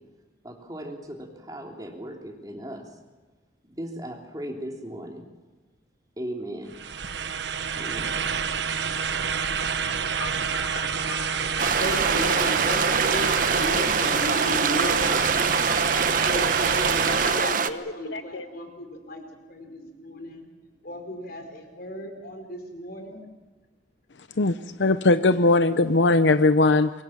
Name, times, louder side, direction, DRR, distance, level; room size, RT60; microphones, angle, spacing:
voice 1, 0.4-2.9 3.7-5.3 6.2-6.7 7.8-8.2 9.2-9.5, right 1 dB, 20° right, 2 dB, 3.2 m, -37 dB
sound 1, 6.7-17.6, right 6 dB, 65° right, 1.1 m, -28 dB
Telephone, 10.2-13.5 14.8-16.3 16.8-18.5, left 5 dB, 85° left, 1.4 m, -38 dB
sound 2, 11.6-17.7, right 5 dB, 45° right, 1.1 m, -24 dB
voice 2, 11.8-15.3 16.2-19.2 19.5-20.5 20.8-23.2, equal, 50° left, 5 dB, 4.7 m, -35 dB
voice 3, 24.4-27.0, left 2 dB, 70° left, 11 dB, 0.8 m, -20 dB
25.5 x 23.0 x 7.4 m, 1.3 s
head